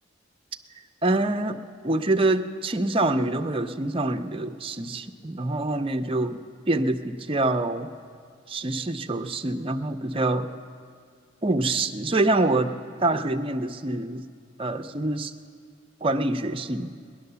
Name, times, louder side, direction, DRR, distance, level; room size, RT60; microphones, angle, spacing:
voice 1, 1.0-1.6 1.8-7.9 8.5-10.5 11.4-12.7 13.0-14.2 14.6-15.3 16.0-16.9, right 2 dB, 25° right, 7 dB, 0.5 m, -25 dB
19.5 x 10.5 x 6.8 m, 2.1 s
head